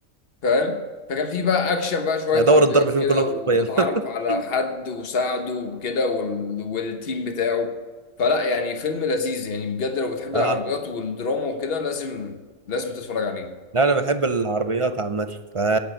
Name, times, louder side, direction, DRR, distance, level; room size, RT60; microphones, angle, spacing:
voice 1, 0.4-0.8 1.1-7.7 8.2-12.3 12.7-13.5, left 4 dB, 50° left, 6 dB, 1.4 m, -25 dB
voice 2, 2.3-3.9 4.3-4.4 10.3-10.6 13.7-15.8, right 3 dB, 40° right, 10 dB, 0.4 m, -21 dB
10.5 x 8.8 x 8.0 m, 1.4 s
omnidirectional pair, 1.4 m